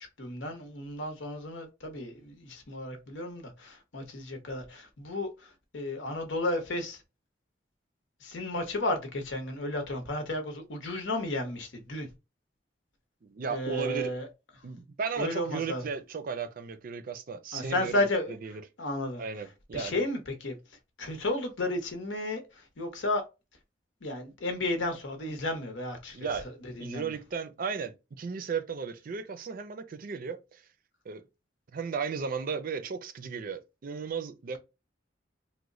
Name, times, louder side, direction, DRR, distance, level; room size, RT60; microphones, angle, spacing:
voice 1, 0.2-7.0 8.2-12.1 13.5-14.3 15.2-15.8 17.5-19.2 19.7-20.5 21.0-23.2 24.0-27.1, left 1 dB, 90° left, 0.9 m, -33 dB
voice 2, 13.2-14.1 14.6-18.0 18.4-18.6 19.2-20.0 26.1-26.5 26.8-30.7 31.1-31.2 31.7-34.6, right 5 dB, 50° right, 0.4 m, -35 dB
3.0 x 2.1 x 3.7 m
head